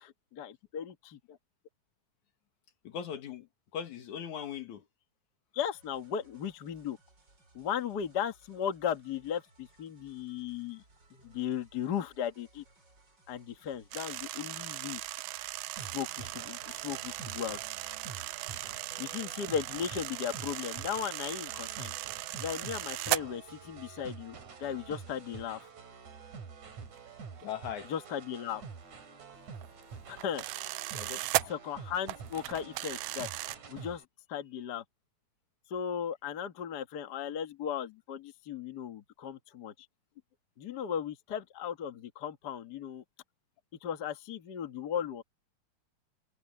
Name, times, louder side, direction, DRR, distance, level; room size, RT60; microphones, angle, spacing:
voice 1, 0.0-1.2 5.5-7.0 7.5-10.8 11.1-12.6 13.3-15.0 15.8-17.6 19.0-21.9 22.4-25.7 27.9-28.6 30.1-30.4 31.5-33.3 33.7-34.0 34.3-34.8 35.7-39.7 40.6-43.0 43.8-45.2, left 8 dB, 45° left, 1.5 m, -36 dB
voice 2, 2.8-3.5 3.7-4.9 11.2-11.4 27.4-27.9 30.9-31.5, left 8 dB, 80° left, 3.2 m, -40 dB
sound 1, 5.7-23.8, right 2 dB, 35° right, 6.1 m, -64 dB
sound 2, 13.9-23.2 27.0-27.1 27.4-27.6 29.3-31.5 32.1-33.6, right 17 dB, 90° right, 1.4 m, -37 dB
sound 3, 15.8-34.0, right 5 dB, 70° right, 4.2 m, -48 dB
omnidirectional pair, 3.4 m